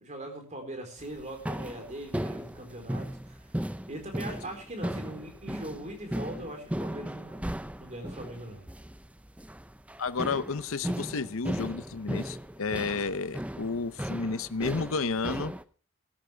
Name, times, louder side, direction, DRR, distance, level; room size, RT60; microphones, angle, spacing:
voice 1, 0.0-7.5 7.8-8.6, right 1 dB, 30° right, 4 dB, 4.3 m, -41 dB
sound 1, 1.0-15.6, right 1 dB, 5° right, 0.5 m, -37 dB
voice 2, 10.0-15.5, left 4 dB, 60° left, 14 dB, 0.7 m, -31 dB
16.0 x 13.0 x 3.4 m, 0.38 s
head